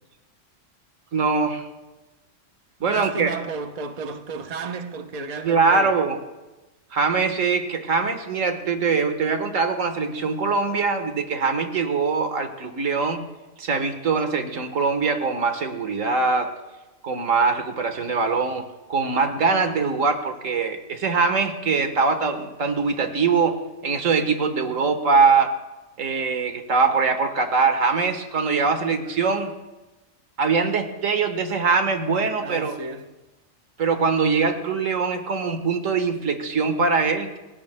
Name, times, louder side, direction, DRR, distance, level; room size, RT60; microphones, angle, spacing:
voice 1, 1.1-1.7 2.8-3.3 5.4-6.2 6.9-13.3 13.6-16.6 17.0-25.6 26.0-29.5 30.4-32.8 33.8-37.4, right 4 dB, 85° right, 1.8 m, -22 dB
voice 2, 2.9-5.9 32.4-33.1, right 4 dB, 35° right, 0.9 m, -32 dB
28.5 x 17.0 x 2.2 m
omnidirectional pair, 1.3 m